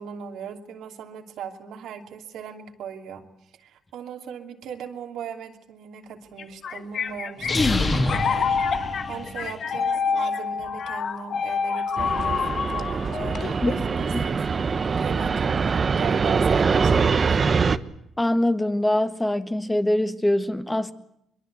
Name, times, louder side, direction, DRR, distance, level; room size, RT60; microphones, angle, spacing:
voice 1, 0.0-3.2 3.6-17.4, right 7 dB, 80° right, 2.9 m, -39 dB
sound 1, 6.4-13.9, left 5 dB, 55° left, 1.4 m, -27 dB
sound 2, 7.4-9.5, left 2 dB, 30° left, 3.6 m, -25 dB
Fixed-wing aircraft airplane, 12.0-17.8, right 5 dB, 40° right, 1.1 m, -23 dB
voice 2, 13.6-14.3 18.2-20.9, left 1 dB, 10° left, 1.5 m, -24 dB
23.0 x 23.0 x 8.1 m
cardioid pair, 90°, 0 cm